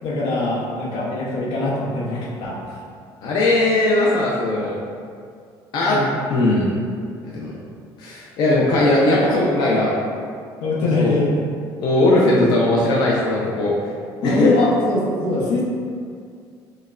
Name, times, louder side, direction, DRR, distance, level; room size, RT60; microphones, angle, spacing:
voice 1, 0.0-2.6 5.9-6.1 10.6-11.3 14.2-15.6, left 2 dB, 90° left, -4 dB, 0.8 m, -22 dB
voice 2, 3.2-4.8 5.7-6.0 6.3-6.7 7.2-7.5 8.0-9.9 11.0-11.2 11.8-13.7 14.2-14.5, left 2 dB, 55° left, -5 dB, 0.5 m, -18 dB
5.0 x 2.2 x 2.4 m, 2.2 s
cardioid pair, 160°, 9 cm